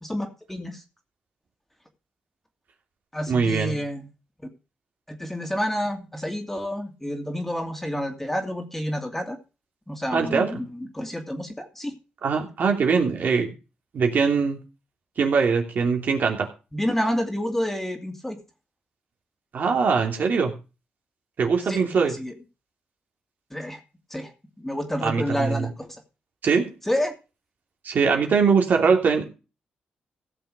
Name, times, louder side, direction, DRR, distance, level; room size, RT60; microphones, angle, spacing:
voice 1, 0.0-0.8 3.1-4.1 5.1-9.4 9.9-11.9 16.7-18.4 21.7-21.8 22.2-22.3 23.5-23.8 24.1-24.3 24.6-26.0 26.9-27.1, equal, 10° left, 5 dB, 2.6 m, -29 dB
voice 2, 3.3-3.8 10.1-10.6 12.2-13.5 13.9-14.6 15.2-16.5 19.5-20.5 21.4-22.1 25.0-25.7 26.4-26.7 27.8-29.3, right 5 dB, 60° right, 2 dB, 3.0 m, -22 dB
16.5 x 6.8 x 4.9 m, 0.32 s
cardioid pair, 80°, 3 cm